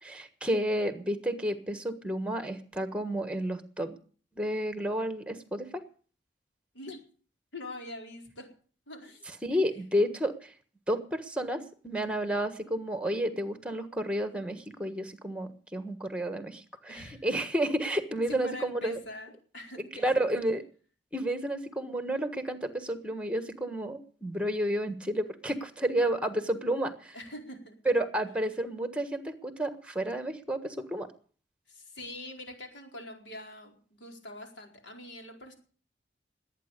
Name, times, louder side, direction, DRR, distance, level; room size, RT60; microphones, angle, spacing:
voice 1, 0.0-4.0 4.4-5.8 9.4-10.5 10.9-19.0 19.8-20.6 21.1-27.1 27.8-31.1, right 1 dB, 5° right, 10 dB, 1.4 m, -31 dB
voice 2, 7.5-8.5 8.9-9.3 9.7-9.8 16.9-17.3 18.4-20.3 27.1-27.8 31.7-35.5, left 1 dB, 80° left, 3 dB, 4.3 m, -44 dB
20.5 x 9.1 x 6.7 m, 0.43 s
head